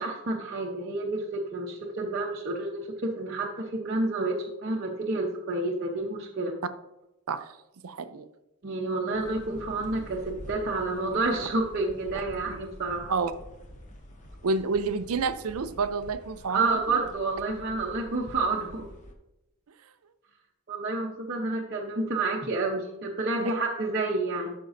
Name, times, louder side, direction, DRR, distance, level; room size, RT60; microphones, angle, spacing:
voice 1, 0.0-4.4 4.6-6.5 8.6-13.1 16.5-18.9 20.7-24.5, right 2 dB, 45° right, -4 dB, 0.8 m, -29 dB
voice 2, 7.8-8.3 13.1-13.3 14.4-16.8 23.4-23.5, right 4 dB, 75° right, 12 dB, 0.5 m, -29 dB
sound 1, 9.1-19.1, equal, 35° left, 0.9 m, -47 dB
13.0 x 5.3 x 2.6 m, 0.92 s
head